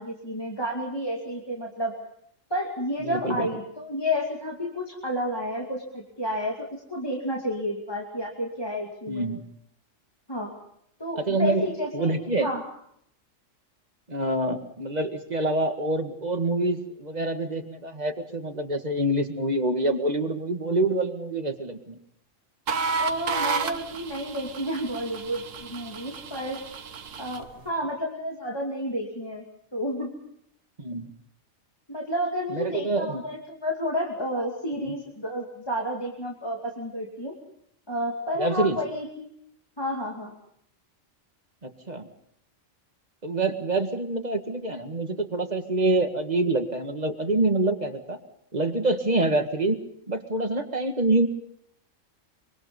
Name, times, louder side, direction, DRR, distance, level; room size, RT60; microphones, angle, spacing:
voice 1, 0.0-1.9 2.5-9.3 10.3-10.5 11.0-12.6 23.0-26.6 27.2-29.5 29.7-30.1 31.9-37.4 37.9-39.3 39.8-40.3, equal, 20° left, -1 dB, 2.6 m, -31 dB
voice 2, 3.0-3.5 9.1-9.4 11.2-11.6 11.9-12.5 14.1-22.0 30.8-31.1 32.5-33.2 34.7-35.0 38.4-38.8 41.6-42.1 43.2-48.2 48.5-49.8 50.1-51.3, right 2 dB, 30° right, 6 dB, 2.1 m, -26 dB
sound 1, 22.7-27.5, right 5 dB, 80° right, 1.5 m, -32 dB
25.0 x 24.5 x 5.4 m, 0.72 s
omnidirectional pair, 1.3 m